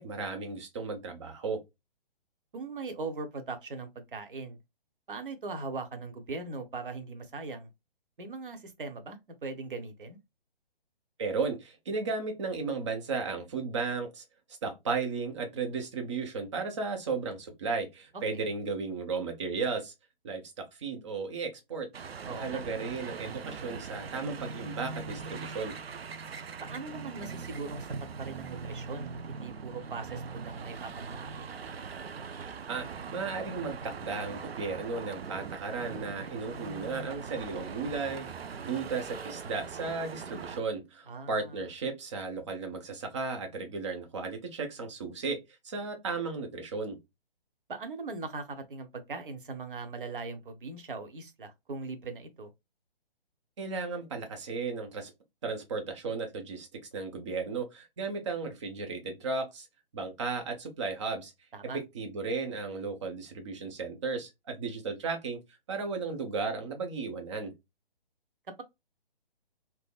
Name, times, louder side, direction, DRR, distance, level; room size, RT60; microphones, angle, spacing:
voice 1, 0.0-1.6 11.2-14.2 14.6-19.9 20.2-21.9 22.3-25.8 32.7-38.3 38.6-45.4 45.6-47.0 53.6-55.1 55.4-59.7 59.9-61.3 61.7-65.4 65.7-67.5, right 4 dB, 30° right, 0.7 m, -35 dB
voice 2, 2.5-4.6 5.1-7.7 8.2-10.2 22.2-22.6 26.6-27.9 28.2-31.5 41.1-41.6 47.7-52.5 61.5-61.8, right 3 dB, 60° right, 0.9 m, -40 dB
sound 1, 21.9-40.6, right 5 dB, 80° right, 0.5 m, -41 dB
3.4 x 2.1 x 2.3 m
figure-of-eight pair, 135°, 30 cm